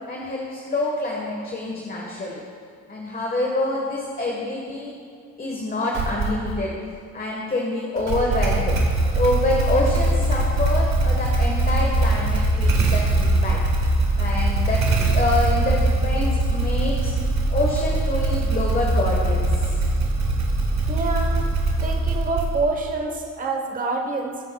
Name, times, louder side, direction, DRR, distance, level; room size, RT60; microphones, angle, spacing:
voice 1, 0.1-2.4 2.9-4.9 5.4-6.7 7.1-8.7 9.1-13.6 14.2-17.1 17.5-19.7, left 2 dB, 30° left, -2 dB, 1.3 m, -26 dB
Motorcycle / Engine starting, 5.9-6.6 8.0-22.9, right 2 dB, 65° right, 1.4 m, -22 dB
voice 2, 20.9-21.4 21.8-24.4, right 3 dB, 25° right, 2 dB, 0.9 m, -26 dB
20.0 x 6.8 x 2.3 m, 2.2 s
cardioid pair, 90°, 30 cm